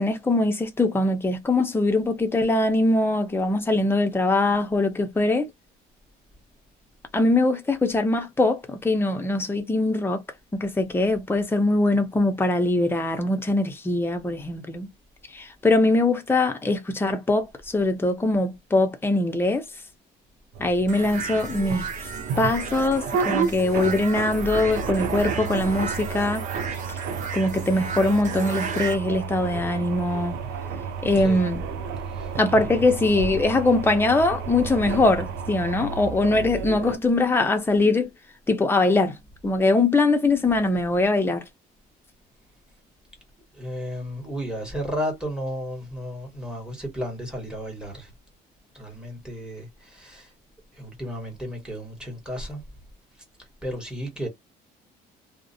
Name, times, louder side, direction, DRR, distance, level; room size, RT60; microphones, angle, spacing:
voice 1, 0.0-5.5 7.1-10.2 10.5-14.9 15.3-19.6 20.6-21.9 22.4-26.5 27.3-30.4 31.0-31.6 32.4-38.1 38.5-39.1 39.4-41.4, left 2 dB, 15° left, 0.6 m, -22 dB
sound 1, 20.5-37.0, right 5 dB, 80° right, 0.5 m, -31 dB
sound 2, 20.9-29.0, right 5 dB, 50° right, 0.8 m, -35 dB
voice 2, 31.2-31.5 32.1-32.9 43.5-48.1 48.7-50.3 50.7-52.6 53.6-54.3, equal, 5° right, 1.2 m, -33 dB
2.4 x 2.1 x 2.6 m
cardioid pair, 110°, 17 cm